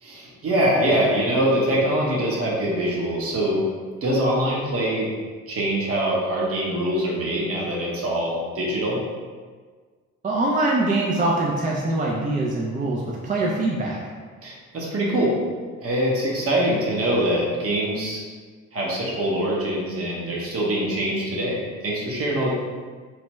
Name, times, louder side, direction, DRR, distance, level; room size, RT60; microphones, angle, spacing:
voice 1, 0.0-3.7 4.0-5.1 5.5-9.0 14.4-15.3 15.8-18.2 18.7-22.5, right 1 dB, 50° right, -4 dB, 0.9 m, -23 dB
voice 2, 10.2-14.0, right 2 dB, 25° right, -3 dB, 0.4 m, -23 dB
3.2 x 2.2 x 2.9 m, 1.6 s
cardioid pair, 90°, 30 cm